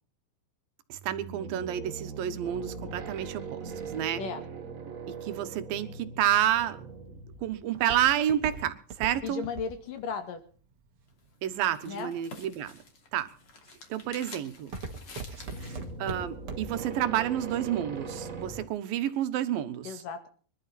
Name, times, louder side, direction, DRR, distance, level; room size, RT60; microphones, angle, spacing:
sound 1, 0.9-7.7 15.3-18.7, right 4 dB, 70° right, 0.7 m, -40 dB
voice 1, 0.9-4.2 5.1-6.8 7.4-9.4 11.4-12.7 13.1-13.3 13.9-14.7 16.0-19.9, right 11 dB, 85° right, 3.0 m, -29 dB
voice 2, 4.2-4.5 9.2-10.4 11.8-12.1 19.8-20.3, left 5 dB, 70° left, 3.8 m, -35 dB
Walk footsteps, 6.6-11.7 12.3-12.8 13.3-13.7 14.0-16.9 17.2-17.3, right 4 dB, 45° right, 2.8 m, -40 dB
sound 2, 11.1-15.9, left 3 dB, 40° left, 3.4 m, -49 dB
25.0 x 11.5 x 4.2 m
omnidirectional pair, 4.0 m